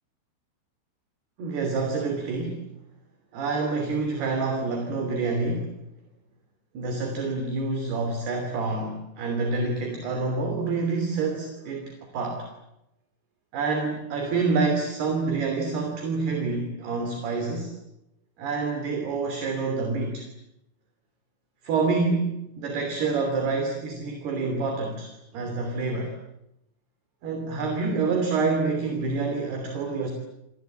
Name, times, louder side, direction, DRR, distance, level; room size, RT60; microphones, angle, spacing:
voice 1, 1.4-2.6 3.3-5.7 6.7-12.5 13.5-17.7 18.4-20.3 21.6-26.1 27.2-30.1, right 4 dB, 55° right, 4 dB, 4.8 m, -27 dB
29.0 x 24.0 x 8.7 m, 0.86 s
omnidirectional pair, 5.9 m